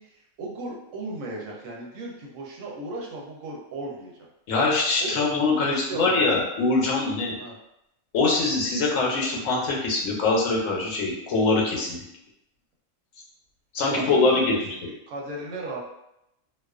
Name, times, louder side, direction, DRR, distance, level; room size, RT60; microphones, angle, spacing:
voice 1, 0.0-4.1 5.0-5.2 5.6-6.3 7.4-7.6 13.9-14.6 15.1-15.8, right 2 dB, 80° right, -2 dB, 1.0 m, -35 dB
voice 2, 4.5-7.4 8.1-12.0 13.7-14.5, left 3 dB, 75° left, -2 dB, 0.9 m, -23 dB
2.3 x 2.3 x 2.3 m, 0.83 s
omnidirectional pair, 1.4 m